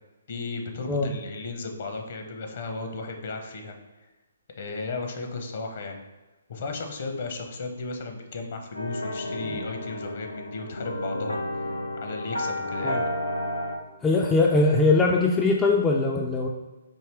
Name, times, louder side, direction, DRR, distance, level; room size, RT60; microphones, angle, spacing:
voice 1, 0.3-4.1 4.5-6.0 6.5-13.0, left 3 dB, 50° left, 4 dB, 0.8 m, -35 dB
sound 1, 8.7-13.7, left 1 dB, 85° left, 0.8 m, -31 dB
voice 2, 14.0-16.5, left 3 dB, 15° left, -1 dB, 0.3 m, -21 dB
4.4 x 2.8 x 3.4 m, 1.2 s
figure-of-eight pair, 135°, 0 cm